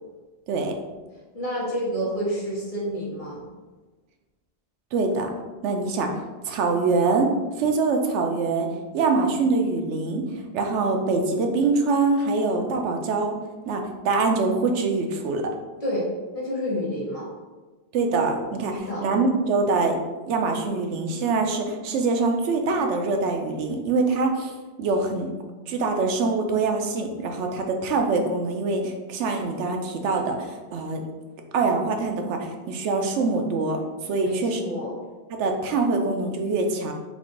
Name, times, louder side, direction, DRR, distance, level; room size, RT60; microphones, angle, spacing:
voice 1, 1.3-3.4 15.8-16.1 16.3-17.2 18.9-19.1 34.2-34.9, equal, 35° left, -6 dB, 1.0 m, -29 dB
voice 2, 4.9-5.3 5.6-6.1 6.4-7.3 7.6-8.7 8.9-13.3 13.7-15.5 17.9-19.9 20.3-24.5 24.8-25.3 25.7-31.0 31.5-34.9 35.3-36.9, right 3 dB, 85° right, 4 dB, 0.9 m, -24 dB
3.7 x 2.5 x 3.7 m, 1.2 s
omnidirectional pair, 1.2 m